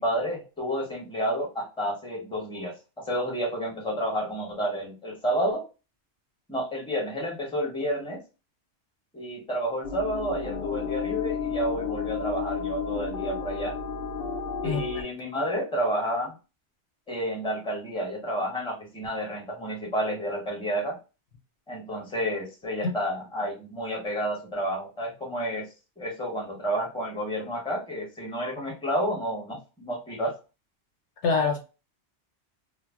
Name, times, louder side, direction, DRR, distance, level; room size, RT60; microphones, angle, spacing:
voice 1, 0.0-5.6 6.5-8.2 9.1-13.8 14.6-16.3 17.1-21.0 21.7-25.7 26.0-30.3, equal, 5° left, 0.8 m, -30 dB
sound 1, 9.8-15.0, left 6 dB, 60° left, 0.7 m, -32 dB
voice 2, 14.6-15.1 22.8-22.9 31.2-31.6, left 4 dB, 80° left, 1.1 m, -25 dB
2.4 x 2.1 x 3.5 m
omnidirectional pair, 1.2 m